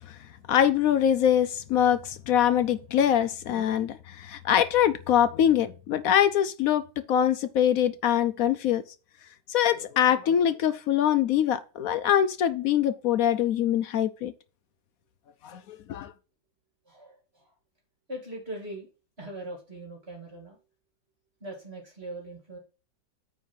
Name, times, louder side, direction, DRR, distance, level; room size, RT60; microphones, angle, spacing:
voice 1, 0.5-8.8 9.5-14.3 15.4-16.1, left 10 dB, 70° left, 0.9 m, -24 dB
voice 2, 16.9-17.5 18.1-18.9 19.2-20.6 21.4-22.6, right 1 dB, 35° right, 2.6 m, -40 dB
9.3 x 3.6 x 5.7 m
omnidirectional pair, 1.9 m